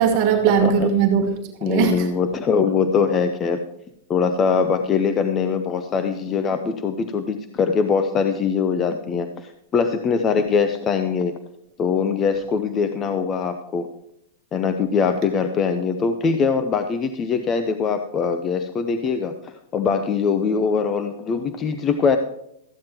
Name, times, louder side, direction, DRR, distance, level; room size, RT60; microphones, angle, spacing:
voice 1, 0.0-2.1, right 7 dB, 35° right, 1.3 m, -19 dB
voice 2, 0.6-0.9 1.6-3.6 4.1-11.3 11.8-13.9 14.5-22.2, left 5 dB, 20° left, 0.6 m, -22 dB
13.5 x 9.3 x 4.5 m
supercardioid pair, 165°, 0 cm